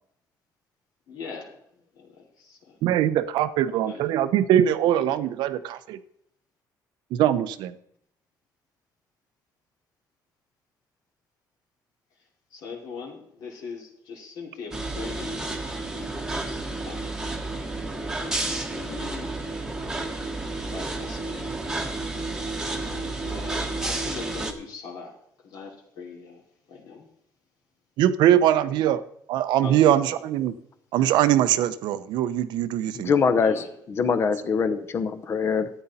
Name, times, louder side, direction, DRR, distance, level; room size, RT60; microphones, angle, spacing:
voice 1, 1.1-1.5 2.0-2.8 3.6-4.0 5.0-5.2 12.5-15.4 15.8-17.1 17.9-19.3 20.7-21.4 22.8-25.1 25.4-26.4 26.7-27.1 29.6-30.2 33.4-33.7, left 5 dB, 65° left, -1 dB, 2.8 m, -41 dB
voice 2, 2.8-6.0 7.1-7.7 28.0-29.0 29.3-30.5 30.9-33.1, right 11 dB, 90° right, 12 dB, 0.8 m, -22 dB
sound 1, 14.7-24.5, right 2 dB, 5° right, 1.2 m, -31 dB
voice 3, 32.9-35.7, left 5 dB, 35° left, 11 dB, 0.9 m, -23 dB
13.0 x 9.1 x 4.2 m, 0.73 s
cardioid pair, 175°, 7 cm